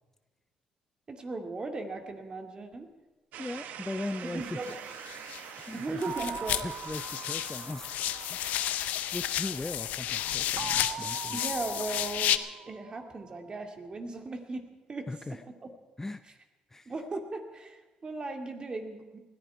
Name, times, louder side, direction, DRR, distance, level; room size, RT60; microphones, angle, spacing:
voice 1, 1.1-2.9 4.2-4.8 5.7-6.6 11.3-12.4 12.7-14.6 14.9-15.1 15.6-15.7 16.9-19.2, right 3 dB, 35° right, 5 dB, 2.3 m, -37 dB
sound 1, 3.3-13.2, right 9 dB, 75° right, 0.9 m, -47 dB
voice 2, 3.4-4.6 5.6-6.3 6.6-8.0 8.3-8.5 9.1-11.4 15.1-15.4 16.0-16.2 16.7-16.9, left 2 dB, 15° left, 11 dB, 0.6 m, -39 dB
sound 2, 4.7-5.7 6.0-12.4, left 12 dB, 80° left, 0.7 m, -32 dB
sound 3, 6.0-8.9 10.6-13.4, right 8 dB, 55° right, 0.4 m, -42 dB
20.0 x 14.0 x 4.6 m, 1.2 s
cardioid pair, 80°, 3 cm